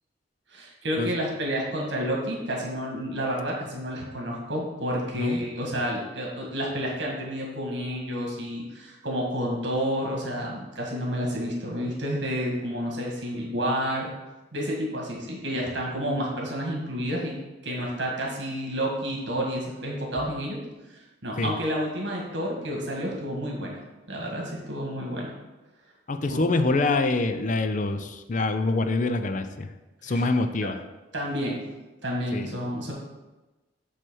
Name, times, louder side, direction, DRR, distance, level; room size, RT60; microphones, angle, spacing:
voice 1, 0.5-14.1 14.5-17.4 17.6-20.6 20.9-23.8 24.1-25.3 26.3-26.5 30.1-30.2 30.6-30.7 31.1-31.6 32.0-32.9, equal, 65° right, -2 dB, 1.8 m, -30 dB
voice 2, 26.1-29.7 30.0-30.8 32.3-32.6, left 3 dB, 40° left, 8 dB, 0.5 m, -25 dB
7.6 x 3.3 x 6.2 m, 1.1 s
head